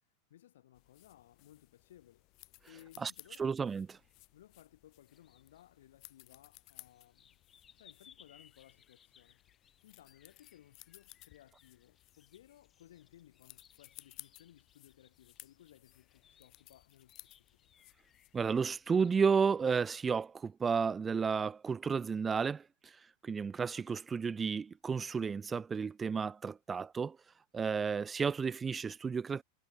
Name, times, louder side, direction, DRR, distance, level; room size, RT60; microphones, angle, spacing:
voice 1, 0.3-2.3 2.7-3.5 4.3-7.4 7.7-9.4 9.8-17.7, left 12 dB, 65° left, 3.8 m, -61 dB
sound 1, 0.7-18.5, left 22 dB, 45° left, 5.6 m, -59 dB
voice 2, 3.4-4.0 18.3-27.2 27.5-29.4, right 5 dB, 20° right, 0.6 m, -32 dB
sound 2, 5.1-19.6, left 8 dB, 25° left, 4.9 m, -66 dB
figure-of-eight pair, 90°, 0 cm